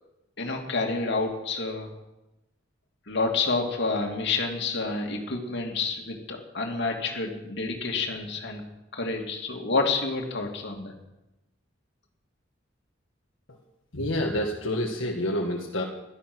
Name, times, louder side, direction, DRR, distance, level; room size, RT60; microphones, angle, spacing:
voice 1, 0.4-1.9 3.1-8.7 8.9-10.9, left 3 dB, 65° left, 2 dB, 2.5 m, -29 dB
voice 2, 13.9-15.8, left 1 dB, 80° left, -1 dB, 1.7 m, -28 dB
15.5 x 12.0 x 6.2 m, 0.97 s
head